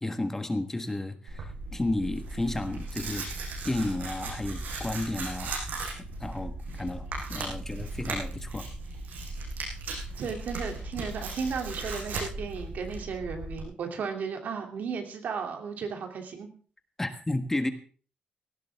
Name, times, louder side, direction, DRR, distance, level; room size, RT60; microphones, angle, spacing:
voice 1, 0.0-3.3 3.6-5.6 6.2-8.7 17.0-17.7, left 2 dB, 15° left, 7 dB, 1.4 m, -32 dB
Tearing, 1.3-13.6, right 2 dB, 85° right, 7.1 m, -37 dB
voice 2, 10.2-16.5, right 5 dB, 70° right, 3 dB, 2.9 m, -34 dB
17.5 x 16.0 x 3.6 m, 0.40 s
wide cardioid pair, 160°, 3 cm